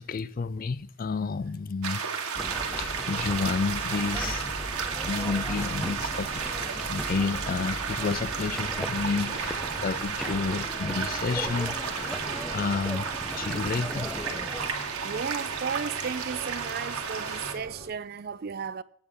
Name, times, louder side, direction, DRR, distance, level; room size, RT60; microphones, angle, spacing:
voice 1, 0.0-2.0 2.8-4.5 5.1-6.4 6.9-13.1 13.3-14.1, left 4 dB, 40° left, 0.3 m, -30 dB
sound 1, 1.8-17.5, right 6 dB, 85° right, 1.6 m, -33 dB
sound 2, 2.2-17.9, right 1 dB, 20° right, 2.5 m, -47 dB
sound 3, 2.4-14.7, equal, ahead, 0.6 m, -38 dB
voice 2, 15.0-18.8, right 6 dB, 45° right, 0.4 m, -34 dB
17.0 x 6.9 x 3.5 m
head